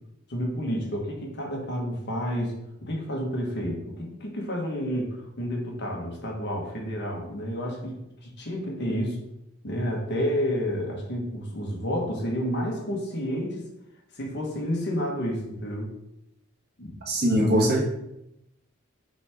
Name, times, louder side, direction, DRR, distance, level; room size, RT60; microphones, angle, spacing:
voice 1, 0.3-2.5 2.8-9.2 9.6-13.7 14.1-15.9 16.8-17.0 17.3-17.8, equal, 50° left, 0 dB, 1.4 m, -30 dB
voice 2, 17.0-17.8, equal, 45° right, -1 dB, 1.4 m, -22 dB
5.9 x 3.5 x 4.9 m, 0.85 s
head